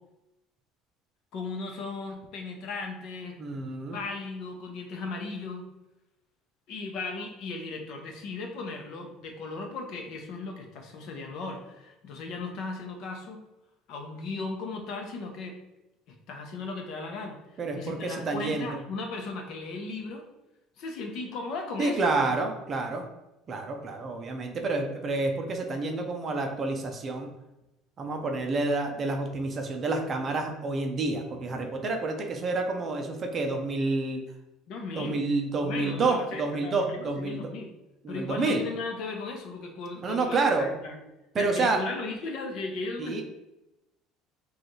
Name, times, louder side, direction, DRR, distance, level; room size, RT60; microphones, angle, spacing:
voice 1, 1.3-3.4 3.9-5.7 6.7-13.4 13.9-15.6 16.1-20.2 20.8-22.2 34.7-35.2 35.6-37.7 38.1-41.0 41.4-43.2, left 3 dB, 50° left, 3 dB, 0.7 m, -36 dB
voice 2, 3.4-4.0 17.6-18.8 21.8-23.1 23.5-27.3 28.0-34.2 34.9-37.4 38.0-38.6 40.0-40.7 41.3-41.8 43.0-43.2, right 3 dB, 25° right, 3 dB, 0.5 m, -29 dB
5.0 x 2.4 x 3.1 m, 0.96 s
cardioid pair, 170°, 0 cm